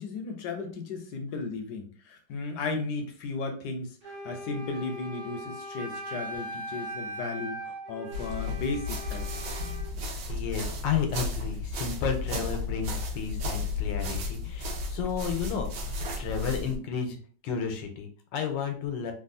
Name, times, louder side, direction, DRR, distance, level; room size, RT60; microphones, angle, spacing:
voice 1, 0.0-9.2, left 3 dB, 70° left, 5 dB, 1.1 m, -35 dB
Wind instrument woodwind instrument, 4.0-9.9, equal, 65° right, 1.1 m, -40 dB
sound 1, 8.1-16.8, left 2 dB, 85° right, 1.4 m, -33 dB
voice 2, 10.3-17.2 17.4-19.1, left 6 dB, 90° left, 5 dB, 1.3 m, -32 dB
3.4 x 2.3 x 2.5 m, 0.41 s
omnidirectional pair, 2.0 m